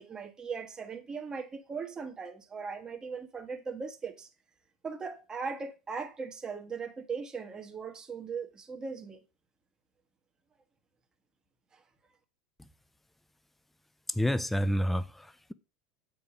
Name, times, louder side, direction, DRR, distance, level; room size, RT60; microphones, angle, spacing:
voice 1, 0.0-4.3 4.8-9.2 11.7-11.8, right 5 dB, 20° right, 1.5 m, -39 dB
voice 2, 14.2-15.5, equal, 5° left, 0.6 m, -29 dB
7.8 x 4.9 x 5.0 m
hypercardioid pair, 100°, 3 cm